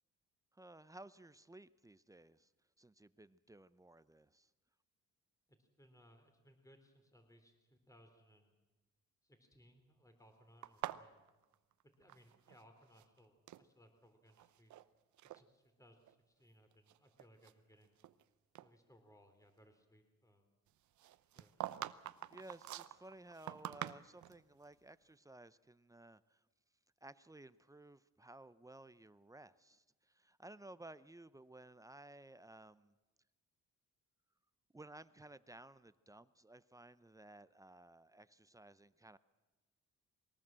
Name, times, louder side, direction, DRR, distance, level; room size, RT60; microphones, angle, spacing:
voice 1, 0.5-2.5 2.8-4.5 22.3-26.4 27.0-32.9 34.7-39.2, right 2 dB, 10° right, 15 dB, 0.7 m, -57 dB
voice 2, 5.5-8.6 9.2-11.4 12.0-14.7 15.2-18.0 18.6-20.5 21.3-21.5, equal, 10° left, 6 dB, 3.6 m, -66 dB
sound 1, 10.6-12.6 12.9-13.7 14.3-14.8 15.2-15.4 16.1-16.2 16.7-18.2 18.5-18.7 21.0-24.4, right 13 dB, 70° right, 0.8 m, -46 dB
22.0 x 18.5 x 7.6 m, 1.2 s
cardioid pair, 90°, 30 cm